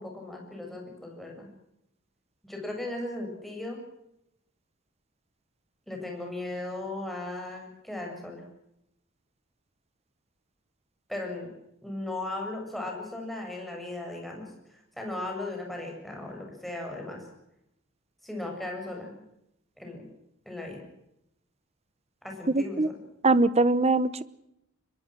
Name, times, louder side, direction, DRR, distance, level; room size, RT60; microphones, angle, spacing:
voice 1, 0.0-1.5 2.4-3.8 5.9-8.4 11.1-11.5 11.8-17.2 18.2-19.2 19.8-20.0 20.5-20.8 22.2-22.8, left 2 dB, ahead, 0 dB, 7.3 m, -37 dB
voice 2, 22.5-22.9 23.2-24.2, right 2 dB, 30° right, 17 dB, 1.0 m, -22 dB
24.0 x 22.5 x 6.3 m, 0.82 s
head